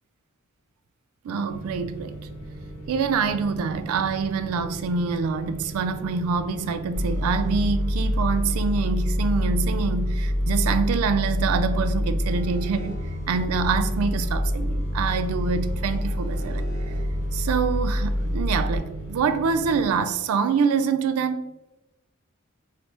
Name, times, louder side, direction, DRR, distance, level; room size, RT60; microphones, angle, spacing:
voice 1, 1.2-2.2 2.9-13.0 13.3-16.7 17.3-21.5, right 5 dB, 85° right, 0.3 m, -25 dB
sound 1, 1.5-20.0, right 2 dB, 40° left, 0.8 m, -39 dB
sound 2, 6.9-18.8, equal, 60° right, 1.1 m, -26 dB
3.3 x 2.7 x 2.9 m
head